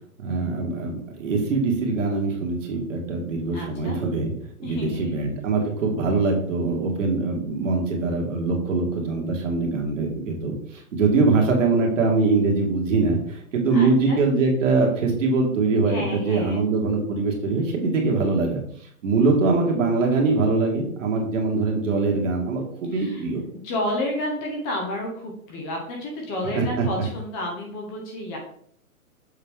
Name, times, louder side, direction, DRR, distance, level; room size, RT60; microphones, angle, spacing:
voice 1, 0.2-4.3 4.6-23.4 26.5-26.9, right 3 dB, 55° right, 0 dB, 2.0 m, -23 dB
voice 2, 3.5-4.0 4.6-5.0 13.7-14.2 15.9-16.6 22.9-23.2 23.6-28.4, left 1 dB, 20° left, 0 dB, 1.1 m, -30 dB
6.7 x 4.0 x 3.6 m, 0.64 s
hypercardioid pair, 150°, 44 cm